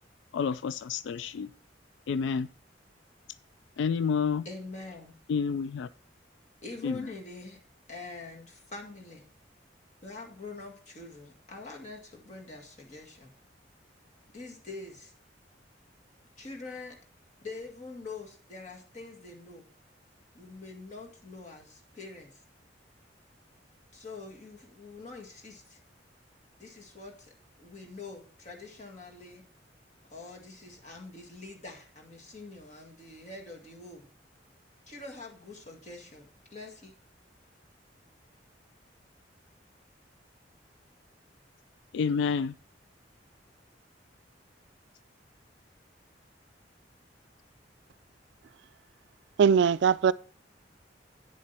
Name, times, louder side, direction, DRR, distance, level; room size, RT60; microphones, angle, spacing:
voice 1, 0.3-1.5 2.1-2.5 3.8-4.4 5.3-5.9 6.8-7.0 41.9-42.5, left 6 dB, 80° left, 0.3 m, -29 dB
voice 2, 4.5-5.1 6.6-7.6 7.9-9.3 10.0-13.3 14.3-15.1 16.4-17.0 17.4-19.7 20.3-22.4 23.9-25.8 26.6-27.3 27.6-29.4 30.1-34.0 34.9-36.3 36.5-36.9, left 3 dB, 40° left, 1.9 m, -44 dB
voice 3, 49.4-50.1, right 7 dB, 70° right, 0.3 m, -21 dB
8.8 x 7.4 x 4.3 m
head